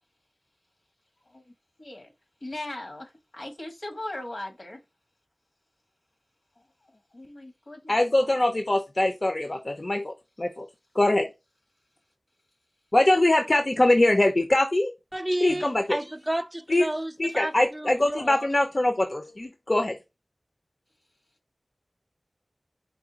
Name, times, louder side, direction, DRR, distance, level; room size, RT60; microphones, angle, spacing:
voice 1, 1.8-2.1 2.4-4.8 6.6-6.7 6.9-8.3, left 1 dB, 75° left, 1.4 m, -39 dB
voice 2, 7.9-10.7 10.9-11.3 12.9-14.9 15.4-16.0 16.7-16.9 17.2-20.0, left 1 dB, 50° left, 0.6 m, -23 dB
voice 3, 15.1-18.5, right 1 dB, 20° right, 0.4 m, -32 dB
4.8 x 2.3 x 3.9 m
wide cardioid pair, 40°, 0 cm